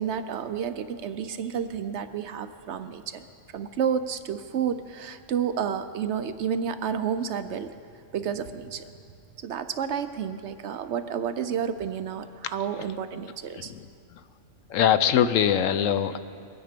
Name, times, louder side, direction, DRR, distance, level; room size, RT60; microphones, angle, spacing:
voice 1, 0.0-3.2 3.5-7.7 8.1-8.9 9.4-13.7, right 8 dB, 65° right, 10 dB, 0.8 m, -30 dB
voice 2, 13.6-14.2 14.7-16.2, left 9 dB, 75° left, 11 dB, 1.0 m, -23 dB
22.5 x 9.5 x 5.1 m, 2.4 s
omnidirectional pair, 1.4 m